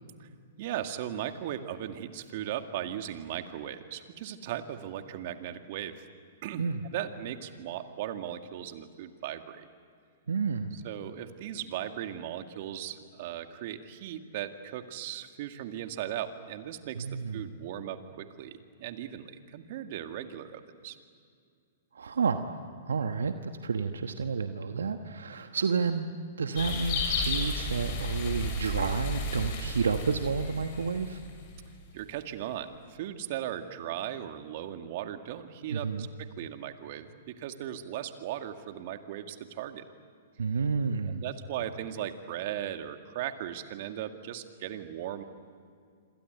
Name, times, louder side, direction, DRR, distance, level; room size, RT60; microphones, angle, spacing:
voice 1, 0.6-6.0 6.4-6.6 6.9-9.7 10.7-17.1 17.3-21.0 31.9-39.8 41.1-45.2, right 11 dB, 50° right, 7 dB, 2.0 m, -37 dB
voice 2, 10.3-10.7 17.0-17.5 21.9-22.6 22.9-31.2 35.7-36.1 40.4-41.2, right 5 dB, 75° right, 7 dB, 1.2 m, -30 dB
sound 1, 26.5-31.6, left 3 dB, 45° left, 7.2 m, -33 dB
27.0 x 26.5 x 8.0 m, 2.3 s
hypercardioid pair, 115°, 0 cm